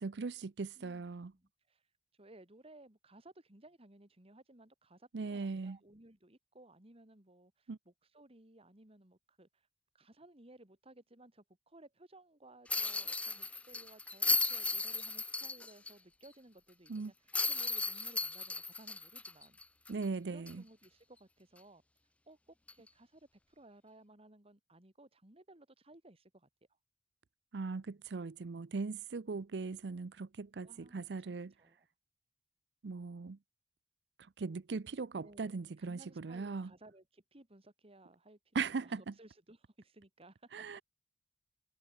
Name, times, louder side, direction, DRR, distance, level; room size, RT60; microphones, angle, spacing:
voice 1, 0.0-1.3 5.1-5.8 7.7-7.8 16.9-17.1 19.9-20.6 27.5-31.5 32.8-33.4 34.4-36.7 38.5-39.0 40.5-40.8, right 4 dB, 70° right, 0.6 m, -39 dB
voice 2, 0.7-1.8 2.1-9.7 9.9-19.6 20.3-21.8 22.3-26.5 27.9-28.0 30.6-31.3 31.6-31.9 35.2-40.5, right 1 dB, 35° right, 2.7 m, -59 dB
sound 1, 12.7-15.9 16.3-16.4 17.3-20.0 20.5-20.6 22.7-22.9, left 3 dB, 10° left, 0.3 m, -35 dB
head